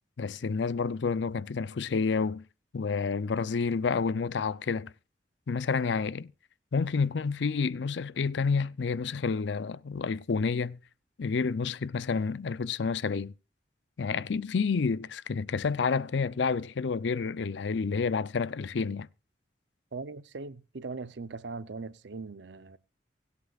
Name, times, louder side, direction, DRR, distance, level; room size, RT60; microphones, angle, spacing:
voice 1, 0.2-2.4 2.7-4.9 5.5-6.3 6.7-10.8 11.2-13.3 14.0-19.1, left 5 dB, 65° left, 0.5 m, -29 dB
voice 2, 19.9-22.8, right 4 dB, 65° right, 0.6 m, -40 dB
24.0 x 8.3 x 2.4 m
head